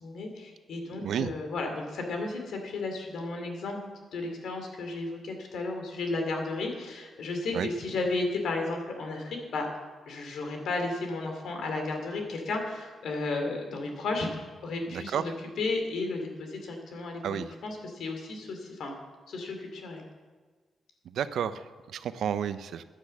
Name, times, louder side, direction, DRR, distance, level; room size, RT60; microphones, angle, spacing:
voice 1, 0.0-3.8 4.1-9.7 10.1-18.9 19.3-20.0, left 3 dB, 75° left, 3 dB, 2.6 m, -33 dB
voice 2, 14.9-15.4 17.2-17.5 21.0-22.8, right 8 dB, 80° right, 13 dB, 0.6 m, -31 dB
10.0 x 9.9 x 7.5 m, 1.4 s
cardioid pair, 105°, 0 cm